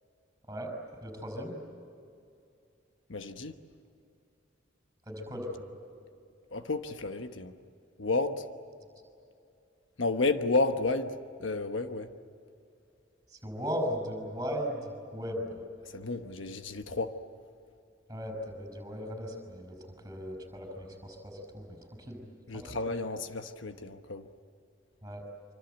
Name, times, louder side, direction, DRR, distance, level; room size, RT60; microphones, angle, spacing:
voice 1, 1.0-1.6 5.1-5.7 13.3-15.6 18.1-22.2 22.5-22.8 25.0-25.2, equal, 15° right, 5.6 m, -37 dB
voice 2, 3.1-3.5 6.5-7.5 8.0-8.5 10.0-12.1 15.9-17.2 22.5-24.3, left 3 dB, 75° left, 1.2 m, -31 dB
25.5 x 25.5 x 8.1 m
head